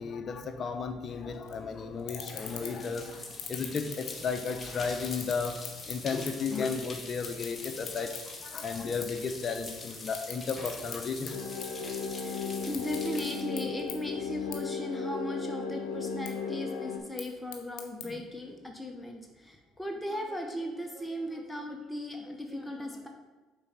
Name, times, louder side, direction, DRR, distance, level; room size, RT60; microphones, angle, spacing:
voice 1, 0.0-5.6 5.9-11.4, left 5 dB, 40° left, 6 dB, 0.7 m, -34 dB
sound 1, 1.5-1.6 2.0-2.9 3.3-4.6 5.0-6.5 6.8-8.2 8.6-8.7 9.0-9.2 9.6-11.0 11.3-12.2 12.6-13.2 13.6-13.7 13.9-14.0 14.5-14.6 15.0-15.5 16.0-16.3 17.0-18.1, left 8 dB, 65° left, 1.1 m, -42 dB
sound 2, 1.5-14.6, left 3 dB, 25° left, 1.2 m, -44 dB
sound 3, 11.3-17.0, left 5 dB, 90° left, 0.7 m, -36 dB
voice 2, 11.8-23.1, left 1 dB, 5° left, 2 dB, 0.9 m, -37 dB
5.5 x 4.1 x 5.7 m, 1.2 s
supercardioid pair, 75°, 0 cm